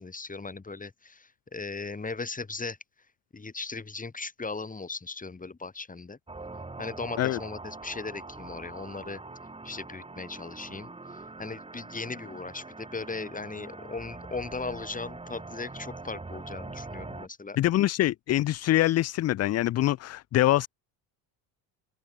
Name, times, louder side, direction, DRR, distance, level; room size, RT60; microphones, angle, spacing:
voice 1, 0.0-2.8 3.3-6.2 6.8-9.2 9.6-10.9 11.4-17.6, left 4 dB, 20° left, 5.5 m, -38 dB
sound 1, 6.3-17.3, right 3 dB, 15° right, 2.4 m, -43 dB
voice 2, 17.6-20.7, left 14 dB, 35° left, 0.5 m, -24 dB
open air
cardioid pair, 105°, 43 cm